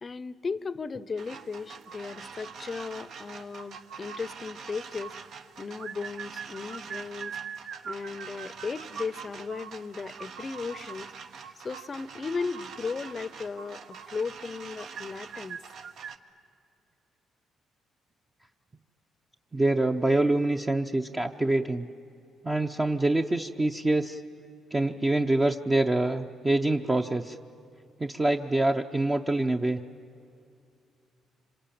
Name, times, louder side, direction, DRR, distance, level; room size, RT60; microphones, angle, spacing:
voice 1, 0.0-5.2 5.6-7.4 7.8-11.1 11.6-15.6, left 4 dB, 30° left, 17 dB, 0.7 m, -36 dB
sound 1, 1.2-16.2, right 6 dB, 70° right, 1.2 m, -42 dB
voice 2, 19.5-21.9 22.4-24.2 24.7-27.4 28.0-29.8, right 2 dB, 20° right, 3 dB, 0.7 m, -25 dB
26.0 x 26.0 x 8.7 m, 2.5 s
cardioid pair, 105°, 0 cm